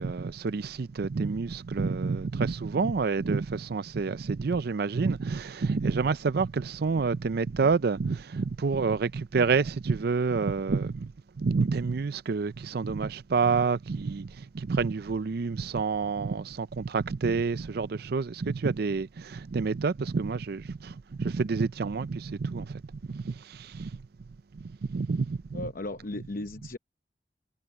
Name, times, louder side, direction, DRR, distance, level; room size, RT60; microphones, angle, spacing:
voice 1, 0.0-11.1 11.4-24.0 24.5-25.7, right 4 dB, 60° right, 0.5 m, -28 dB
voice 2, 25.5-26.8, left 2 dB, 50° left, 0.8 m, -36 dB
head